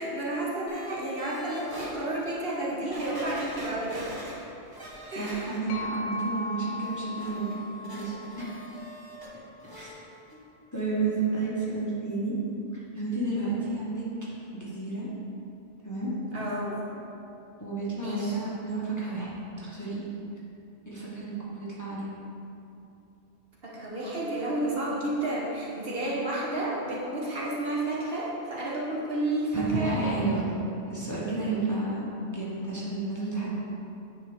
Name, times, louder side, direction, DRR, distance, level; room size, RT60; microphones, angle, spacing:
voice 1, 0.0-4.3 5.1-5.5 16.3-16.9 18.0-18.4 23.6-30.2, right 1 dB, 55° right, -5 dB, 1.3 m, -31 dB
sound 1, 0.7-1.9 2.5-2.6 2.9-5.9 6.2-9.3 9.6-9.9 10.3-10.4, equal, 20° right, 1.0 m, -44 dB
voice 2, 5.2-8.5 9.7-9.9 10.7-12.4 12.7-14.0 14.5-15.1 15.8-16.1 17.6-19.3 19.6-20.0 20.9-22.1 29.5-30.4 30.9-33.5, right 3 dB, 15° left, -8 dB, 1.2 m, -31 dB
sound 2, 5.7-9.5, left 2 dB, 75° left, 1.0 m, -38 dB
9.6 x 4.3 x 3.5 m, 2.7 s
omnidirectional pair, 1.2 m